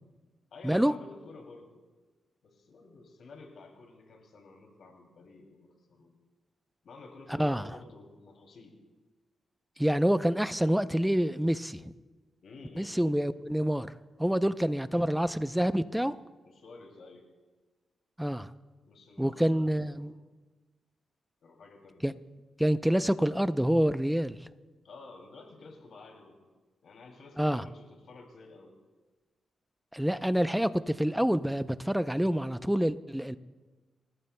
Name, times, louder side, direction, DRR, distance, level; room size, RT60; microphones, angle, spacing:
voice 1, 0.5-1.8 2.4-6.2 6.8-8.8 12.4-13.0 16.4-17.3 18.9-20.3 21.4-22.0 24.8-26.5 26.8-28.8, left 3 dB, 70° left, 2.8 m, -51 dB
voice 2, 9.8-11.9 12.8-13.9 14.2-16.1 18.2-18.5 19.2-20.1 22.0-22.1 22.6-24.4 27.4-27.6 29.9-33.4, equal, 5° right, 0.5 m, -27 dB
29.0 x 15.0 x 2.2 m
cardioid pair, 80°, 0 cm